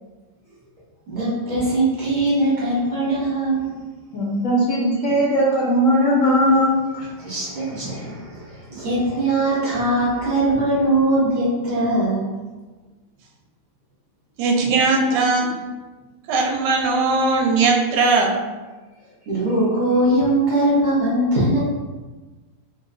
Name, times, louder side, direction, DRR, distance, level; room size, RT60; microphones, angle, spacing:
voice 1, 1.1-3.7 7.2-12.2 19.3-21.6, right 1 dB, 35° right, -8 dB, 0.8 m, -21 dB
voice 2, 4.1-7.0, equal, 65° left, -5 dB, 0.8 m, -18 dB
voice 3, 14.4-15.6 16.3-18.3, right 3 dB, 90° right, 0 dB, 1.2 m, -19 dB
3.0 x 3.0 x 2.5 m, 1.3 s
omnidirectional pair, 1.8 m